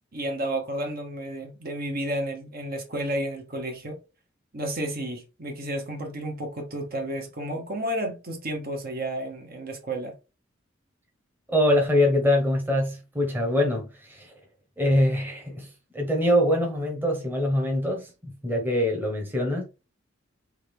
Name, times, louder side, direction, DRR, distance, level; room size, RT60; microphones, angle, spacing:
voice 1, 0.1-4.0 4.5-10.1, right 1 dB, 50° right, 1.1 m, -31 dB
voice 2, 11.5-14.3 14.8-15.7 15.9-19.6, left 1 dB, 10° right, 1.1 m, -24 dB
3.7 x 3.4 x 3.5 m
head